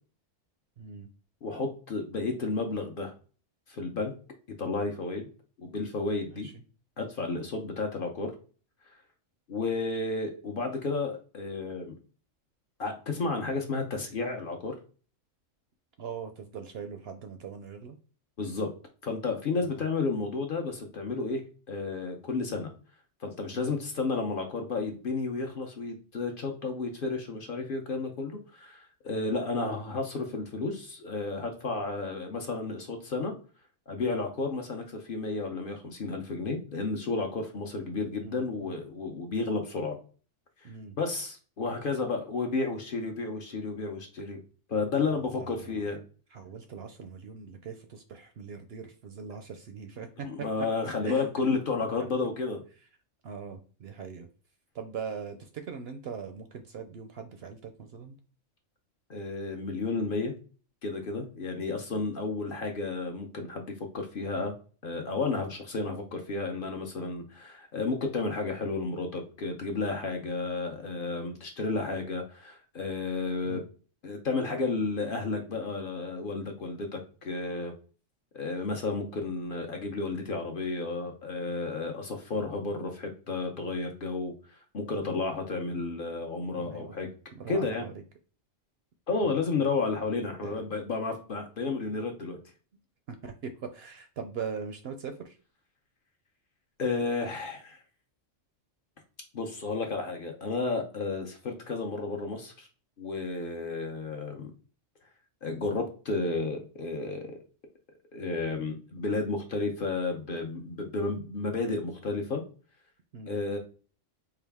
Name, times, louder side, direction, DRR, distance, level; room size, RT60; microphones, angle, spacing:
voice 1, 0.8-1.1 6.2-6.5 16.0-18.0 19.6-19.8 23.5-23.8 29.1-29.3 38.2-38.7 40.6-40.9 44.9-45.1 45.4-45.8 46.3-50.5 51.0-51.3 53.2-54.3 54.7-58.1 73.4-73.6 86.6-86.9 87.3-87.9 89.2-89.7 90.4-90.6 93.1-95.4 113.1-113.4, right 6 dB, 65° right, 7 dB, 0.7 m, -41 dB
voice 2, 1.4-3.1 3.7-4.1 4.6-5.3 5.6-6.5 7.0-8.3 9.5-11.9 12.8-14.7 18.4-18.7 19.0-21.4 21.7-22.7 23.2-33.3 33.9-40.0 40.6-40.7 41.0-44.4 44.7-46.0 50.2-52.6 59.1-60.4 60.8-64.5 64.8-73.6 74.0-77.7 78.3-84.3 84.7-87.1 87.5-87.9 89.1-92.4 96.8-97.8 99.3-102.7 103.0-104.5 105.4-107.4 108.1-112.4 113.3-113.6, left 3 dB, 50° left, 3 dB, 0.8 m, -32 dB
4.6 x 2.4 x 3.5 m, 0.38 s
omnidirectional pair, 1.3 m